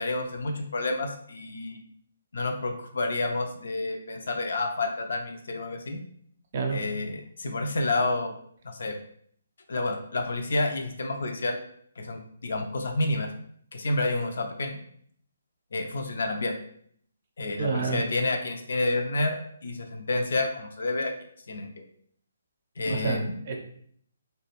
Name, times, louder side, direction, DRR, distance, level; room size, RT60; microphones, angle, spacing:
voice 1, 0.0-1.8 2.3-6.0 6.7-8.3 8.6-9.0 9.7-11.6 12.0-13.3 13.7-14.8 15.7-16.5 17.4-21.1 21.5-21.8 22.8-23.4, left 2 dB, 65° left, 4 dB, 0.4 m, -29 dB
voice 2, 17.6-18.0 22.9-23.6, right 5 dB, 45° right, 2 dB, 0.5 m, -29 dB
2.3 x 2.1 x 2.9 m, 0.63 s
figure-of-eight pair, 140°, 0 cm